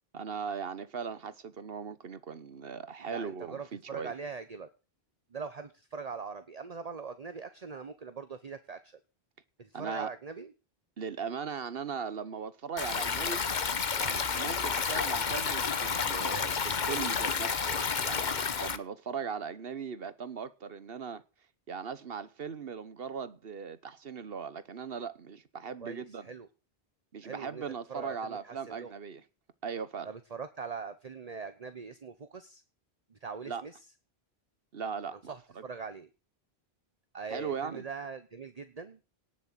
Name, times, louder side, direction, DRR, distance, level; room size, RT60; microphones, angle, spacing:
voice 1, 0.1-4.1 9.7-10.1 11.0-13.4 14.0-21.2 21.7-26.3 27.1-29.2 29.6-30.1 33.4-33.6 34.7-35.6 37.3-37.9, right 6 dB, 65° right, 1.3 m, -39 dB
voice 2, 3.0-4.7 5.3-9.0 9.6-10.5 14.5-14.7 25.8-26.5 27.2-27.6 27.9-28.9 30.0-32.6 33.1-33.7 35.3-36.1 37.1-39.0, right 5 dB, 40° right, 1.1 m, -42 dB
Stream, 12.8-18.8, left 6 dB, 50° left, 1.1 m, -30 dB
18.5 x 6.9 x 7.4 m
omnidirectional pair, 1.1 m